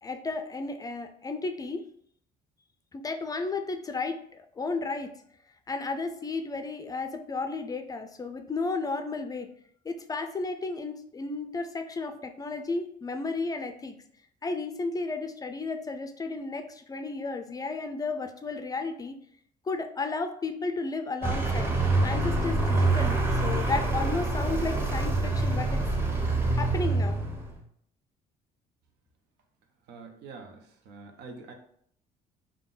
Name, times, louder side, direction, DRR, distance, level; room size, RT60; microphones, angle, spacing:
voice 1, 0.0-1.9 2.9-5.1 5.7-9.5 9.8-14.0 14.4-19.2 19.6-21.8 22.0-25.8 26.5-27.2, left 3 dB, 20° left, 7 dB, 0.3 m, -33 dB
Vehicle, 21.2-27.6, right 2 dB, 15° right, 0.7 m, -26 dB
voice 2, 29.9-30.6 30.9-31.5, right 4 dB, 80° right, 5 dB, 0.7 m, -45 dB
3.7 x 2.3 x 3.8 m, 0.65 s
cardioid pair, 110°, 17 cm